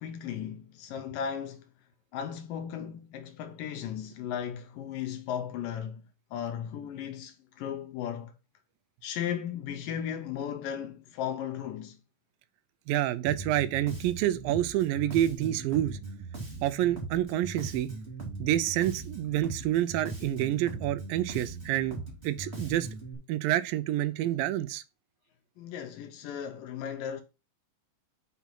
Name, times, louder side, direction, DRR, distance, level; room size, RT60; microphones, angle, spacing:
voice 1, 0.0-1.7 2.1-6.0 6.3-8.3 9.0-12.0 25.6-27.2, left 9 dB, 80° left, 2.5 m, -36 dB
voice 2, 12.9-16.0 16.6-17.9 18.4-22.0 22.2-22.9 23.3-24.8, right 13 dB, 90° right, 2.4 m, -28 dB
Bass guitar, 13.3-23.1, right 3 dB, 20° right, 2.0 m, -40 dB
5.9 x 5.9 x 5.5 m
omnidirectional pair, 4.0 m